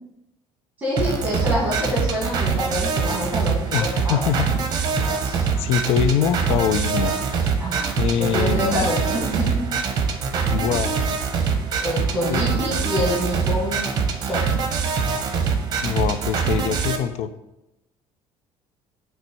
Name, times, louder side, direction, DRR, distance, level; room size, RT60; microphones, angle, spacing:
voice 1, 0.8-4.2 5.2-5.4 7.6-7.9 8.2-9.7 11.8-13.9 14.2-14.4, left 1 dB, 15° right, -5 dB, 1.7 m, -26 dB
sound 1, 1.0-17.0, right 5 dB, 35° right, 0.8 m, -24 dB
voice 2, 3.7-4.5 4.9-5.1 5.6-7.1 8.0-8.9 10.5-11.0 12.3-12.5 15.8-17.3, left 8 dB, 60° left, 11 dB, 0.4 m, -23 dB
9.0 x 3.2 x 4.5 m, 0.90 s
cardioid pair, 165°, 11 cm